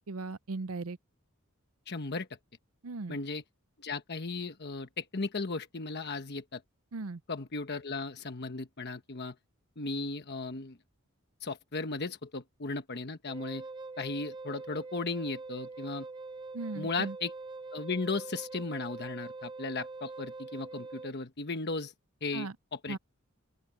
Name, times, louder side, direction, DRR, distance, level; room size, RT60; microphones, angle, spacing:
voice 1, 0.1-1.0 2.8-3.2 6.9-7.2 16.5-17.2 22.3-22.5 22.9-23.0, right 3 dB, 80° right, 0.6 m, -37 dB
voice 2, 1.9-2.3 3.1-3.4 3.8-6.6 7.3-9.3 9.8-10.8 11.4-13.6 14.0-16.1 16.7-17.3 17.7-21.9 22.2-23.0, left 3 dB, 50° left, 1.2 m, -36 dB
Wind instrument woodwind instrument, 13.3-21.1, right 3 dB, 20° right, 0.6 m, -43 dB
open air
head